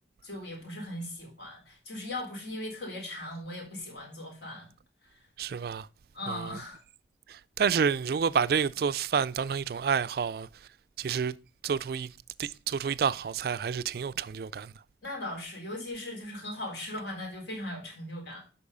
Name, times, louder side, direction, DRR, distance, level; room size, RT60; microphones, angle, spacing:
voice 1, 0.2-4.7 5.1-5.2 6.1-6.8 15.0-18.4, left 1 dB, 70° left, 4.1 m, -38 dB
voice 2, 5.4-5.9 6.3-6.6 7.3-10.5 11.0-11.3 11.6-12.1 12.4-14.7, right 6 dB, 55° right, 0.3 m, -29 dB
8.5 x 5.5 x 5.4 m
head